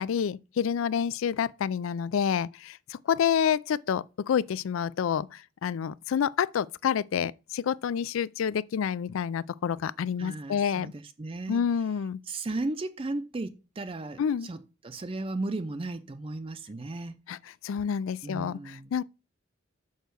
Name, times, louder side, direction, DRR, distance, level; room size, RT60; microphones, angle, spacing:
voice 1, 0.0-10.9 11.5-12.2 14.2-14.5 17.3-17.4 17.6-19.0, left 7 dB, 90° left, 0.3 m, -28 dB
voice 2, 10.2-11.7 12.3-17.2 18.2-18.9, right 2 dB, 25° right, 0.5 m, -35 dB
6.4 x 4.6 x 6.7 m
head